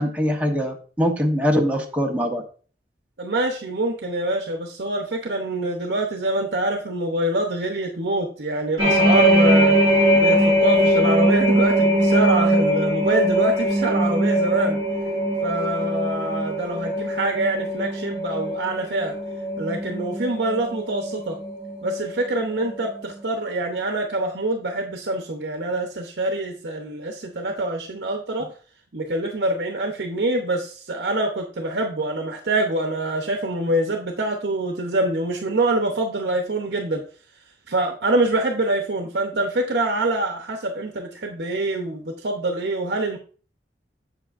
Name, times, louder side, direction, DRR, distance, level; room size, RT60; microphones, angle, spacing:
voice 1, 0.0-2.4, equal, 10° right, 0 dB, 0.9 m, -22 dB
voice 2, 3.2-9.8 10.1-14.8 15.4-19.1 19.6-21.4 21.8-28.5 28.9-37.1 37.7-43.2, right 2 dB, 70° right, 3 dB, 0.8 m, -25 dB
sound 1, 8.8-22.3 22.6-22.9, equal, 30° right, 1.2 m, -21 dB
7.6 x 6.5 x 2.5 m, 0.41 s
head